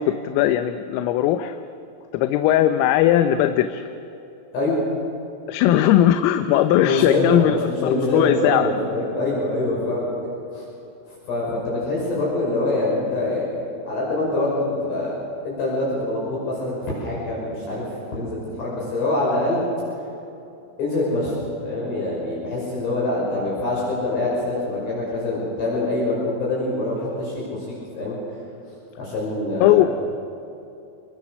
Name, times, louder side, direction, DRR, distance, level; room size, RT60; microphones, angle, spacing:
voice 1, 0.0-1.6 2.1-3.8 5.5-8.7 29.6-29.9, left 12 dB, 85° left, 8 dB, 3.4 m, -19 dB
voice 2, 6.8-10.1 10.5-10.7 11.1-15.1 15.4-19.6 20.8-21.4 21.6-27.7 28.0-28.2 29.0-29.8, left 2 dB, 55° left, -5 dB, 7.9 m, -25 dB
28.0 x 23.0 x 6.5 m, 2.8 s
omnidirectional pair, 5.8 m